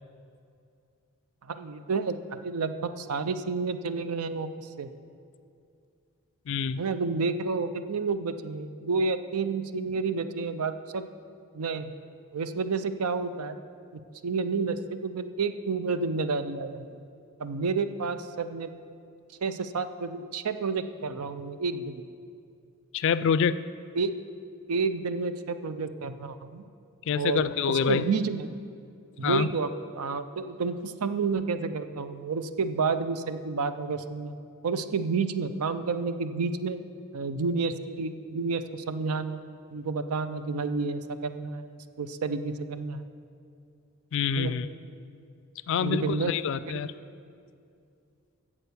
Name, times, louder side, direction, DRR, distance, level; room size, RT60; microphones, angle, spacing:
voice 1, 1.5-4.9 6.8-11.0 11.5-11.9 12.3-13.6 14.2-17.0 17.4-18.7 19.4-22.1 24.0-24.1 24.7-26.6 27.1-28.5 29.2-34.4 34.6-36.8 37.1-39.4 39.7-43.0 44.3-44.6 45.8-46.3 46.7-46.9, right 4 dB, 90° right, 11 dB, 0.5 m, -30 dB
voice 2, 6.5-6.8 22.9-23.6 27.1-28.1 29.2-29.5 44.1-44.7 45.7-46.9, left 6 dB, 55° left, 15 dB, 0.3 m, -26 dB
9.0 x 7.4 x 6.8 m, 2.4 s
head